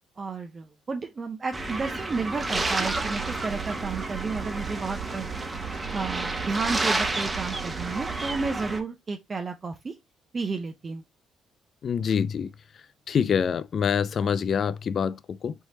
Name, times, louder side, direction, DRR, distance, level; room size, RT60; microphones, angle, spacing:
voice 1, 0.2-5.3 5.9-9.9 10.3-11.0, right 4 dB, 35° right, 0.6 m, -32 dB
sound 1, 1.5-8.8, right 2 dB, 20° right, 1.0 m, -30 dB
sound 2, 2.5-8.5, right 12 dB, 80° right, 0.8 m, -39 dB
voice 2, 11.8-12.5 13.1-15.5, left 7 dB, 55° left, 0.4 m, -25 dB
4.6 x 3.1 x 2.8 m
supercardioid pair, 75°, 0 cm